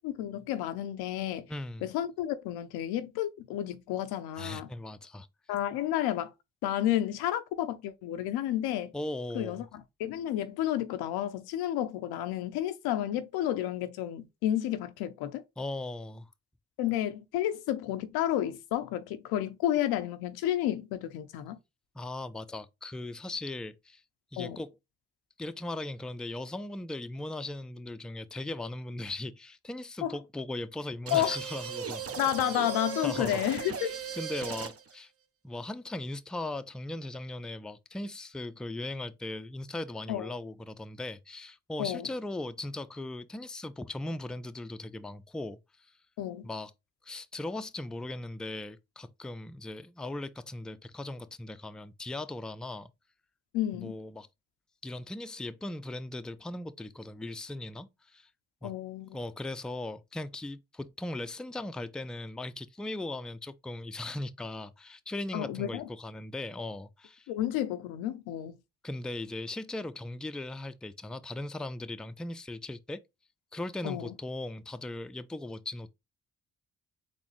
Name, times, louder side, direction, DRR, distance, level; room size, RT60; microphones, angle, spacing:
voice 1, 0.0-1.5 1.8-4.7 5.5-6.3 6.6-8.9 9.4-15.4 16.8-21.6 24.4-24.6 30.0-30.1 31.1-31.4 32.2-34.0 40.1-40.3 41.8-42.1 46.2-46.5 53.5-54.0 58.6-59.2 65.3-65.9 67.3-68.6 73.8-74.1, left 12 dB, 85° left, 0.5 m, -31 dB
voice 2, 1.5-1.9 4.4-5.3 8.9-9.7 15.6-16.3 21.9-24.0 24.3-24.7 25.4-32.2 32.5-32.7 33.0-33.4 33.7-35.1 35.4-45.9 46.4-46.7 47.0-52.9 53.8-54.3 54.8-58.3 58.6-58.7 59.1-67.3 68.8-73.0 73.5-75.9, left 2 dB, ahead, 0.4 m, -38 dB
sound 1, 31.1-35.0, right 7 dB, 40° right, 0.7 m, -37 dB
4.1 x 3.2 x 3.0 m
hypercardioid pair, 40°, 37 cm